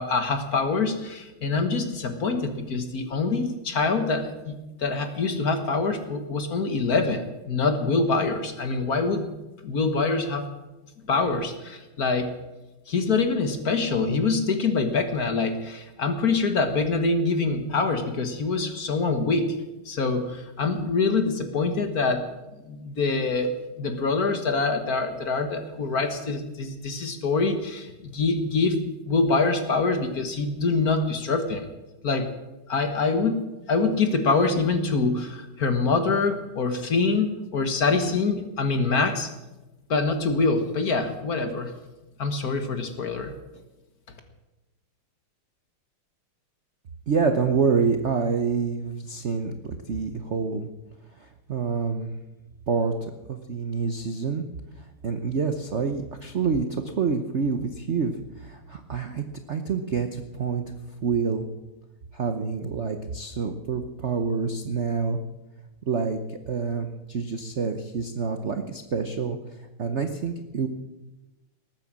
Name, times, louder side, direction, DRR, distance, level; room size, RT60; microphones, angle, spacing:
voice 1, 0.0-9.3 9.6-10.5 11.0-12.3 12.9-19.5 19.8-22.3 22.7-28.8 29.1-31.7 32.0-32.3 32.7-33.4 33.7-39.3 39.9-41.7 42.2-43.3, left 4 dB, 50° left, 7 dB, 1.6 m, -25 dB
voice 2, 47.1-50.7 51.2-52.1 52.7-54.4 54.8-60.7 61.0-61.4 62.1-65.2 65.9-70.7, right 5 dB, 50° right, 6 dB, 0.8 m, -27 dB
19.5 x 9.1 x 7.5 m, 1.0 s
omnidirectional pair, 2.3 m